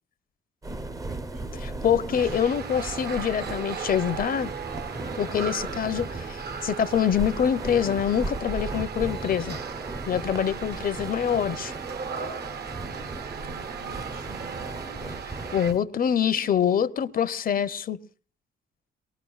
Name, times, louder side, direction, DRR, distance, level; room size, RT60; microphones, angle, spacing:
sound 1, 0.6-15.8, right 2 dB, 15° right, 0.6 m, -37 dB
voice 1, 0.8-2.6 12.6-15.2 16.1-16.5 17.1-17.6, right 3 dB, 85° right, 5.2 m, -49 dB
voice 2, 1.8-4.5 5.2-9.6 10.1-11.7 15.5-18.0, left 8 dB, 45° left, 0.7 m, -25 dB
sound 2, 2.2-15.7, right 6 dB, 55° right, 0.9 m, -37 dB
23.5 x 20.0 x 2.4 m
cardioid pair, 90°, 20 cm